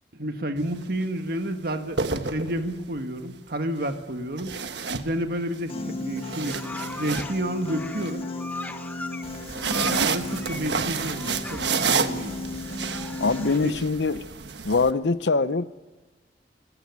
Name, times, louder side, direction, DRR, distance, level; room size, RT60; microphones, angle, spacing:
voice 1, 0.1-4.6 4.9-6.5 7.0-8.3 9.7-12.4 13.6-13.8, right 1 dB, 60° right, 1.8 m, -30 dB
sound 1, 0.6-0.8 1.7-2.9 4.4-5.6 6.0-8.1 9.2-14.9, right 5 dB, 80° right, 1.3 m, -30 dB
Piano, 5.7-13.7, left 2 dB, 35° left, 1.7 m, -35 dB
sound 2, 6.2-7.4 7.6-10.6 11.0-11.9 12.5-13.6, left 1 dB, 10° left, 1.2 m, -39 dB
voice 2, 13.2-14.2 14.6-15.6, left 3 dB, 85° left, 0.9 m, -23 dB
30.0 x 17.0 x 9.6 m
head